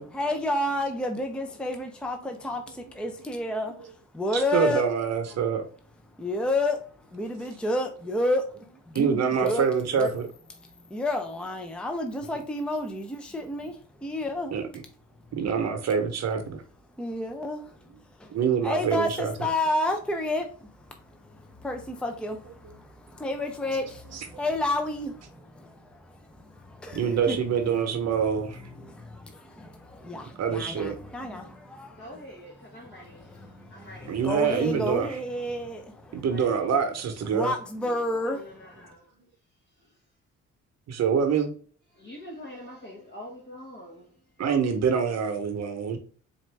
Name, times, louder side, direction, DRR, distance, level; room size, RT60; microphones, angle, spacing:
voice 1, 0.1-3.9 4.1-4.8 6.2-6.8 7.1-8.5 8.9-10.1 10.9-14.5 17.0-17.8 18.2-18.3 18.6-20.8 21.2-27.4 28.8-32.0 32.9-36.2 37.3-38.4, left 1 dB, 5° left, 0.6 m, -30 dB
voice 2, 4.3-5.7 8.9-10.3 14.5-14.7 15.4-16.4 18.3-19.3 24.1-24.2 26.9-28.6 30.4-31.0 34.1-35.2 36.1-37.5 40.9-41.5 44.4-46.0, right 7 dB, 60° right, 0.9 m, -25 dB
voice 3, 30.0-30.4 31.9-34.9 36.3-36.7 37.3-37.4 38.2-39.0 39.7-40.0 41.9-44.4, left 1 dB, 35° left, 1.2 m, -46 dB
4.2 x 2.6 x 3.2 m
cardioid pair, 90°, 30 cm